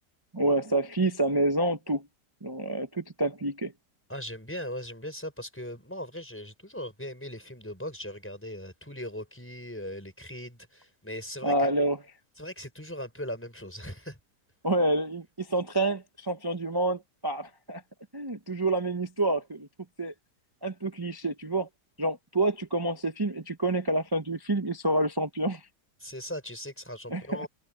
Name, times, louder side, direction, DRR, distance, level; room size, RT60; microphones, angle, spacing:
voice 1, 0.3-2.1 2.4-3.7 11.4-12.0 14.6-17.8 18.1-19.7 20.0-20.1 20.6-21.7 22.0-25.6 27.1-27.5, right 2 dB, 25° right, 0.5 m, -28 dB
voice 2, 4.1-11.7 12.4-14.2 26.0-27.5, left 1 dB, 5° left, 6.2 m, -39 dB
omnidirectional pair, 1.7 m